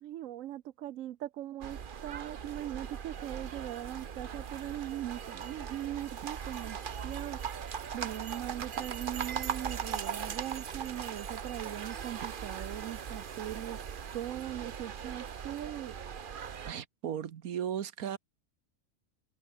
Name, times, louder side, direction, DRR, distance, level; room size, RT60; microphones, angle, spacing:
voice 1, 0.0-6.8 7.0-13.8 14.1-16.0, right 13 dB, 70° right, 1.0 m, -40 dB
sound 1, 1.6-16.7, right 7 dB, 45° right, 0.9 m, -39 dB
voice 2, 16.6-18.2, right 9 dB, 90° right, 1.5 m, -36 dB
omnidirectional pair, 1.5 m